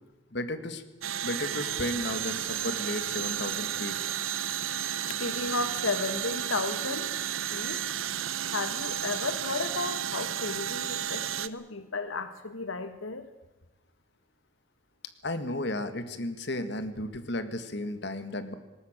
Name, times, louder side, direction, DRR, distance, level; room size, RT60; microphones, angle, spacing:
voice 1, 0.3-0.8 1.2-4.0 15.2-18.5, left 1 dB, 60° left, 10 dB, 1.8 m, -34 dB
sound 1, 1.0-11.5, right 10 dB, 85° right, 0.9 m, -32 dB
voice 2, 5.2-7.1 7.5-7.8 8.5-13.3, left 3 dB, 85° left, 10 dB, 1.4 m, -33 dB
20.0 x 18.0 x 9.0 m, 1.1 s
head